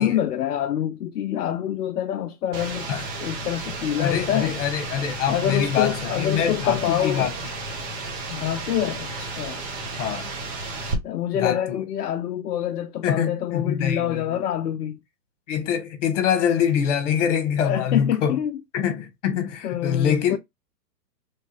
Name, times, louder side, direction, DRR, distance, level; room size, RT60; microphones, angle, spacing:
voice 1, 0.0-2.9 3.2-4.6 5.3-7.3 8.3-9.6 11.0-15.0 17.6-18.6 19.6-20.4, left 10 dB, 65° left, 0.6 m, -26 dB
sound 1, 2.5-10.9, right 3 dB, 30° right, 0.8 m, -33 dB
voice 2, 4.0-7.3 10.0-10.3 11.4-11.8 13.0-14.2 15.5-18.3 18.7-20.4, left 8 dB, 45° left, 1.2 m, -24 dB
3.3 x 2.6 x 2.9 m
hypercardioid pair, 130°, 49 cm